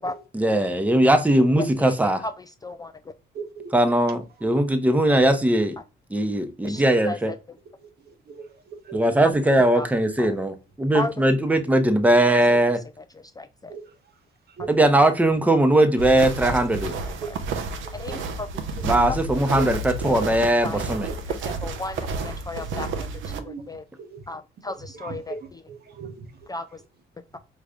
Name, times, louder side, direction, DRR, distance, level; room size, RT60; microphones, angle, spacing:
voice 1, 0.3-2.2 3.7-5.8 6.1-7.3 8.9-12.8 14.7-16.9 18.8-21.1, right 1 dB, 5° right, 8 dB, 0.8 m, -20 dB
voice 2, 6.6-7.2 9.8-9.9 10.2-10.3 10.9-11.1 13.4-13.5 17.2-17.3 17.9-18.5 20.0-20.4 20.6-20.8 21.4-23.1 23.7-23.8 24.3-25.4 26.5-26.7, left 2 dB, 20° left, 10 dB, 0.4 m, -34 dB
sound 1, 16.0-23.4, right 3 dB, 75° right, 0.7 m, -31 dB
voice 3, 22.9-23.6 24.1-24.2 24.9-25.2 25.7-26.1, right 6 dB, 55° right, 7 dB, 1.1 m, -37 dB
5.0 x 3.1 x 2.4 m, 0.30 s
cardioid pair, 90°, 20 cm